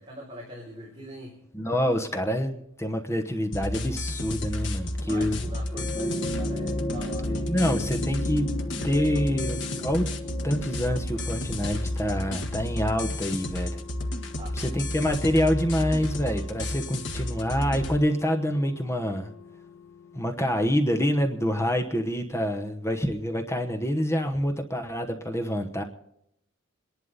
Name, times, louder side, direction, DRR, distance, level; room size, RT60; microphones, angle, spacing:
voice 1, 0.0-1.4 5.0-7.5 14.3-14.6, equal, 25° right, -3 dB, 3.5 m, -42 dB
voice 2, 1.5-5.4 7.5-8.5 8.8-10.1 10.4-13.8 14.6-19.3 20.1-25.8, equal, 15° left, 5 dB, 1.0 m, -26 dB
sound 1, 3.3-21.5 21.8-21.9, left 3 dB, 80° left, 1.5 m, -47 dB
sound 2, 3.5-17.9, left 1 dB, 60° left, 1.4 m, -32 dB
sound 3, 5.6-14.3 15.5-15.6, left 1 dB, 30° left, 1.2 m, -35 dB
27.5 x 11.0 x 4.0 m, 0.78 s
head